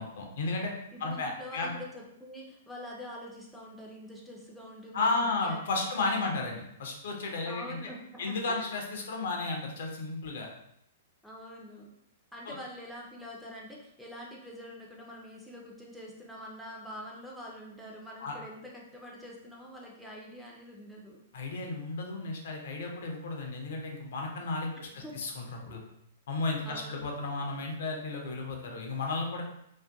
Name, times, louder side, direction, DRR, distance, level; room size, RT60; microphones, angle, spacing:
voice 1, 0.0-0.7 1.0-1.7 4.9-7.8 8.2-10.5 12.5-12.6 18.2-18.3 21.3-25.8 26.3-29.4, left 3 dB, 55° left, 1 dB, 0.5 m, -33 dB
voice 2, 0.9-5.9 6.2-6.3 7.5-8.7 11.2-11.9 12.3-21.2 24.7-25.2 25.7-25.8 26.6-27.0, equal, ahead, -4 dB, 0.5 m, -45 dB
2.5 x 2.4 x 2.3 m, 0.76 s
figure-of-eight pair, 110°, 0 cm